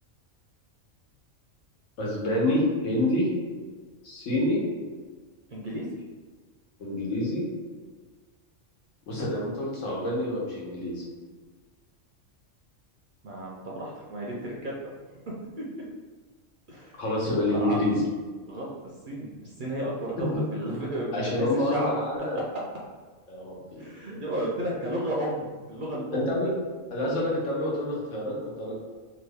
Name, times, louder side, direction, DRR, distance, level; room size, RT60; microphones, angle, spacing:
voice 1, 2.0-3.3 4.0-4.6 6.8-7.4 9.1-11.0 17.0-18.0 20.2-20.3 21.1-22.4 23.3-23.9 26.1-26.5 26.9-28.7, left 1 dB, 80° left, -4 dB, 1.3 m, -27 dB
voice 2, 5.5-5.9 13.2-14.7 15.3-15.7 16.7-17.0 17.5-17.8 18.5-18.7 19.1-21.9 22.3-22.4 23.8-26.3, right 1 dB, 55° right, -4 dB, 0.6 m, -33 dB
3.0 x 2.3 x 3.3 m, 1.4 s
omnidirectional pair, 1.3 m